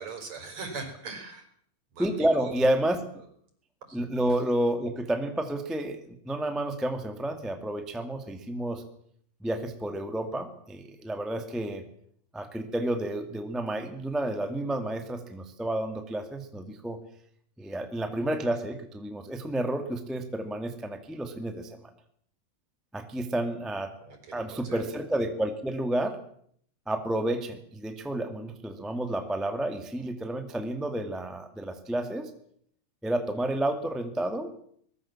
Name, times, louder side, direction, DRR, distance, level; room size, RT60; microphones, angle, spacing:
voice 1, 0.0-1.5 1.9-2.5 3.9-4.1 24.0-24.8, right 4 dB, 45° right, 6 dB, 6.1 m, -41 dB
voice 2, 2.0-3.0 3.9-8.8 9.4-11.8 12.3-17.0 17.6-21.8 22.9-23.9 24.3-26.2 26.9-32.3 33.0-34.6, right 1 dB, ahead, 6 dB, 1.1 m, -30 dB
23.0 x 21.0 x 7.4 m, 0.64 s
omnidirectional pair, 4.3 m